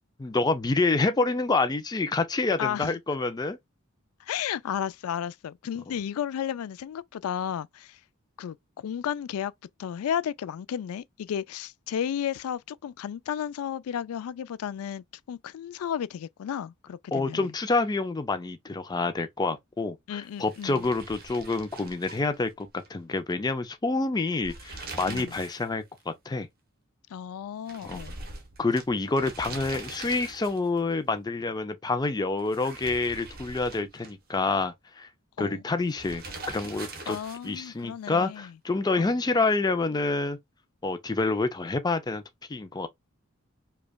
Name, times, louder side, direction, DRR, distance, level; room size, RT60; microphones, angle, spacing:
voice 1, 0.2-3.6 17.1-26.5 27.8-28.0 28.6-35.1 35.4-37.2 37.4-40.4 40.8-42.2 42.5-42.9, left 3 dB, 20° left, 0.4 m, -27 dB
voice 2, 2.6-2.9 4.2-8.0 8.4-9.5 9.8-17.5 20.1-20.9 25.1-25.4 27.1-28.2 35.4-35.6 37.1-38.5 39.0-39.2, left 9 dB, 85° left, 0.3 m, -33 dB
Rolling Curtain, 20.4-22.9 23.2-23.3 24.3-25.7 26.0-26.1 27.7-30.8 32.4-34.4 36.0-37.7, right 3 dB, 45° right, 1.0 m, -42 dB
5.0 x 2.3 x 2.3 m
head